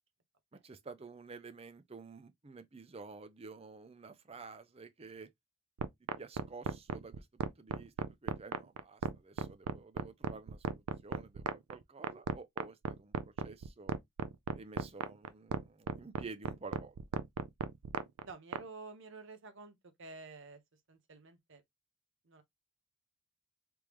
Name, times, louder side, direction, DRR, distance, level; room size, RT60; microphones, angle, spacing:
voice 1, 0.6-5.3 6.2-7.9 8.2-14.0 14.5-17.0, right 4 dB, 25° right, 0.5 m, -51 dB
sound 1, 5.8-18.6, right 6 dB, 85° right, 0.4 m, -35 dB
voice 2, 18.2-20.6 20.9-21.6 22.3-22.4, right 3 dB, 55° right, 0.8 m, -50 dB
3.5 x 3.4 x 3.0 m
head